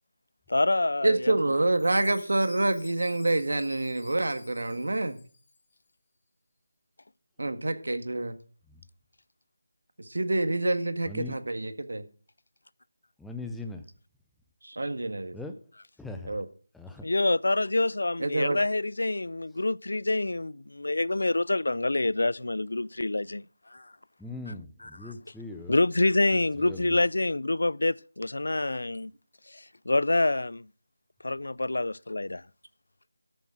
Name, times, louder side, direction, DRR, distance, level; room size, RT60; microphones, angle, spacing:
voice 1, 0.5-1.5 17.0-23.9 24.8-25.1 25.7-29.1 29.5-30.7 31.2-32.4, left 2 dB, 80° left, 0.4 m, -27 dB
voice 2, 1.0-5.2 7.4-8.3 10.0-12.1 14.6-15.4 16.3-16.5 18.2-18.6, right 2 dB, 80° right, 1.8 m, -27 dB
Chime, 1.8-5.8, left 3 dB, 25° left, 2.4 m, -52 dB
voice 3, 11.0-11.4 13.2-13.8 15.3-15.5 16.0-16.4 16.7-17.1 24.2-25.7 26.3-27.0, left 2 dB, ahead, 0.5 m, -40 dB
13.0 x 7.3 x 6.1 m
figure-of-eight pair, 175°, 0 cm